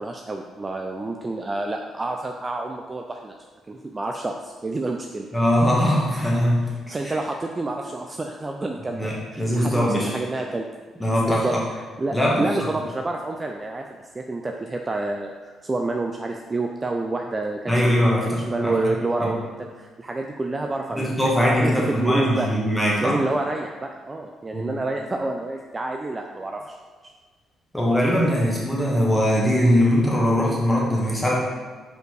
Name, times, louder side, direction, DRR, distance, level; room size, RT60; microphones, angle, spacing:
voice 1, 0.0-3.3 3.7-5.3 6.9-9.1 9.3-10.7 11.2-11.6 12.0-13.8 14.1-21.7 22.0-22.5 23.0-26.8, right 2 dB, 25° right, 2 dB, 0.5 m, -28 dB
voice 2, 5.3-6.6 7.0-7.2 9.0-10.2 11.0-11.6 12.1-12.4 17.7-18.7 19.2-19.3 21.0-23.2 24.5-24.7 27.7-31.3, equal, 5° left, -5 dB, 1.9 m, -21 dB
5.3 x 4.4 x 4.7 m, 1.5 s
cardioid pair, 90°, 0 cm